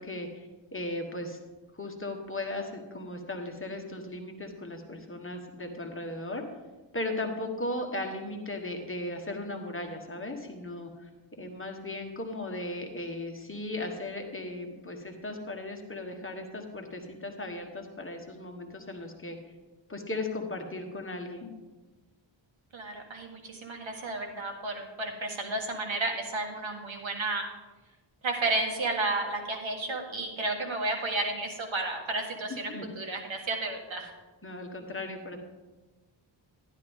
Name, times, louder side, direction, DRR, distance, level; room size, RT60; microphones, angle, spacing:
voice 1, 0.0-1.4 1.7-6.5 6.9-11.1 11.4-19.4 19.9-21.5 32.7-32.9 34.4-35.4, left 2 dB, 25° left, 3 dB, 1.3 m, -37 dB
voice 2, 22.7-27.5 28.2-34.1, right 2 dB, 75° right, 2 dB, 1.6 m, -32 dB
11.5 x 11.0 x 3.6 m, 1.2 s
wide cardioid pair, 110°, 47 cm